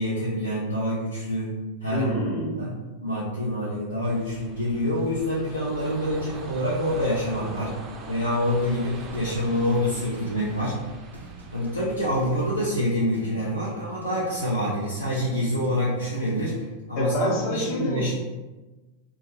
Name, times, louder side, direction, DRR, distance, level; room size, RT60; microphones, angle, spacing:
voice 1, 0.0-2.1 2.6-2.7 3.0-7.8 8.1-10.8 11.5-18.1, equal, 80° left, -7 dB, 0.5 m, -26 dB
voice 2, 1.9-2.7 17.0-18.1, left 1 dB, 45° left, -3 dB, 0.7 m, -27 dB
sound 1, 4.0-12.7, right 3 dB, 30° right, 0.3 m, -42 dB
sound 2, 8.6-16.6, right 3 dB, 90° right, 0.5 m, -46 dB
2.2 x 2.1 x 3.1 m, 1.2 s
figure-of-eight pair, 90°, 0 cm